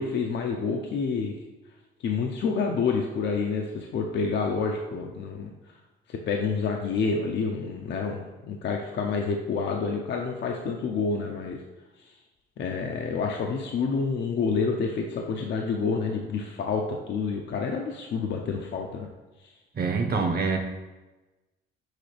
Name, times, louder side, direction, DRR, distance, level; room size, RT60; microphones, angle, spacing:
voice 1, 0.0-1.4 2.0-5.8 6.1-11.6 12.0-12.1 12.6-19.1, left 5 dB, 60° left, 1 dB, 0.7 m, -28 dB
voice 2, 19.7-20.6, right 4 dB, 50° right, 4 dB, 1.0 m, -25 dB
6.5 x 5.0 x 3.3 m, 1.2 s
cardioid pair, 90°, 20 cm